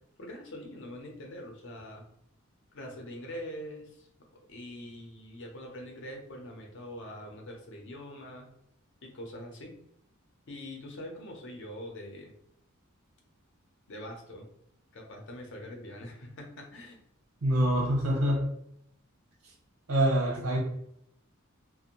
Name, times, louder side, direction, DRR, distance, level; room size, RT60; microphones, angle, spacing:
voice 1, 0.2-2.1 2.7-4.1 4.5-8.5 9.0-9.7 10.5-12.3 13.9-14.5 14.9-17.0, left 1 dB, 60° left, 1 dB, 0.6 m, -43 dB
voice 2, 17.4-18.5 19.9-20.6, right 1 dB, 90° right, -1 dB, 0.9 m, -25 dB
2.5 x 2.0 x 2.9 m, 0.73 s
head